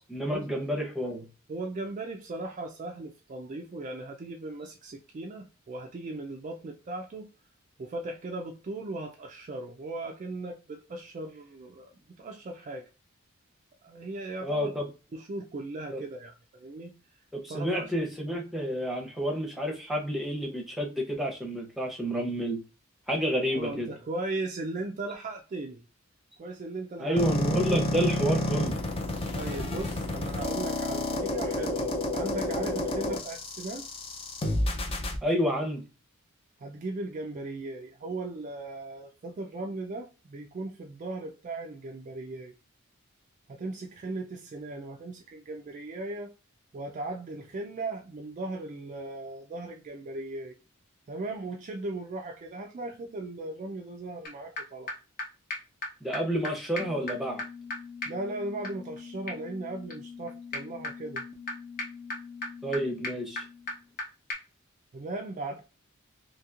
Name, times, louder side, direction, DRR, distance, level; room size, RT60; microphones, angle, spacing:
voice 1, 0.1-1.2 14.4-14.8 15.9-16.0 17.3-22.6 23.1-23.9 27.0-28.8 35.2-35.8 56.0-57.4 62.6-63.4, equal, ahead, 0.7 m, -29 dB
voice 2, 1.5-7.3 7.8-11.9 12.2-12.9 13.8-14.7 15.1-16.9 17.5-17.9 23.4-25.8 26.4-27.2 29.3-33.9 36.6-42.5 43.5-46.4 46.7-50.6 51.1-54.9 58.1-61.2 64.9-65.6, right 2 dB, 35° right, 0.3 m, -37 dB
sound 1, 27.2-35.2, left 1 dB, 25° left, 0.4 m, -30 dB
sound 2, 54.3-54.4 54.6-54.7 54.9-55.0 55.2-55.3 55.5-55.6 55.8-55.9 56.1-56.2 56.4-56.5 56.8-64.0 64.3-64.4, left 2 dB, 45° left, 0.8 m, -38 dB
2.8 x 2.8 x 2.4 m
head